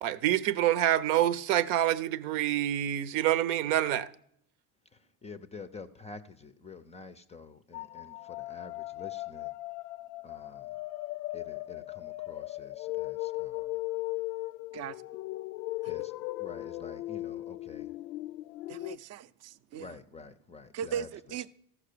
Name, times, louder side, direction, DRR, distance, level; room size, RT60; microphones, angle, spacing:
voice 1, 0.0-4.1, right 12 dB, 75° right, 0.8 m, -27 dB
voice 2, 4.9-9.5 10.2-10.7 11.3-13.7 15.9-16.1 16.4-17.9 19.8-21.1, left 4 dB, 15° left, 0.4 m, -48 dB
sound 1, 7.7-19.0, left 18 dB, 90° left, 0.5 m, -38 dB
voice 3, 18.7-19.9 20.7-21.5, right 8 dB, 40° right, 0.5 m, -38 dB
14.0 x 6.1 x 6.6 m
supercardioid pair, 115°, 44 cm